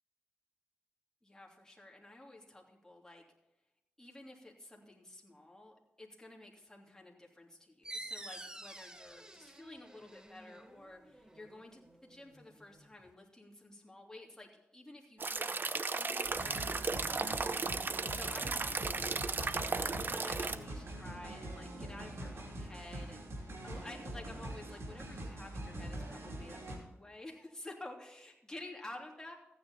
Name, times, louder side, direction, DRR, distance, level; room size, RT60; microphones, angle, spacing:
voice 1, 1.2-3.2 4.0-29.4, left 2 dB, 15° left, -1 dB, 3.0 m, -52 dB
sound 1, 7.8-13.1, right 1 dB, 15° right, 1.2 m, -50 dB
sound 2, 15.2-20.6, right 4 dB, 50° right, 0.7 m, -35 dB
sound 3, 16.2-26.8, right 1 dB, 75° right, 2.9 m, -44 dB
14.5 x 9.5 x 4.2 m, 0.93 s
cardioid pair, 70°, 4 cm